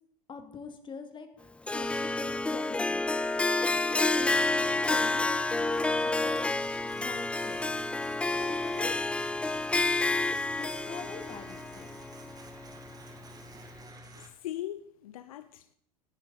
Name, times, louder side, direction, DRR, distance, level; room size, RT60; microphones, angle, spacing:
voice 1, 0.3-3.0 3.5-6.5 6.8-7.6 8.3-9.0 10.6-12.0, left 5 dB, 25° left, 2.3 m, -44 dB
Harp, 1.7-12.9, left 2 dB, 5° left, 0.5 m, -29 dB
sound 1, 1.8-2.4 4.2-14.3, right 1 dB, 20° right, 2.5 m, -49 dB
voice 2, 14.2-15.7, left 13 dB, 60° left, 0.7 m, -40 dB
18.0 x 10.5 x 4.0 m
figure-of-eight pair, 85°, 20 cm